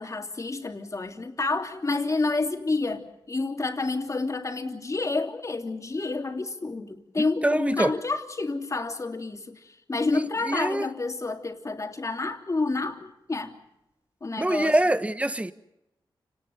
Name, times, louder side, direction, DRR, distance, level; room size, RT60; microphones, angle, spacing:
voice 1, 0.0-3.0 3.3-9.6 9.9-13.5 14.2-14.7, left 3 dB, 35° left, 3.1 m, -29 dB
voice 2, 7.2-7.9 10.1-10.9 14.4-15.5, right 1 dB, 15° right, 1.2 m, -25 dB
29.5 x 19.0 x 7.0 m
wide cardioid pair, 85°, 9 cm